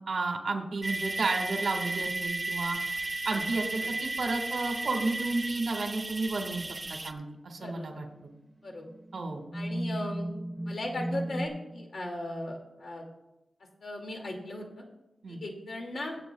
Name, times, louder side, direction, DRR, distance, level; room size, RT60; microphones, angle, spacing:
voice 1, 0.0-2.8 3.2-8.3 9.1-9.4 15.2-15.4, right 3 dB, 70° right, 4 dB, 1.6 m, -32 dB
sound 1, 0.8-7.1, right 2 dB, 30° right, 0.6 m, -34 dB
sound 2, 6.9-7.2 8.0-8.1 8.9-11.5, right 1 dB, 5° left, 1.6 m, -35 dB
voice 2, 9.5-10.3 10.6-13.0 13.8-14.8 15.3-16.2, left 1 dB, 55° left, 1 dB, 2.3 m, -37 dB
24.0 x 8.1 x 2.3 m, 0.94 s
wide cardioid pair, 120°, 0 cm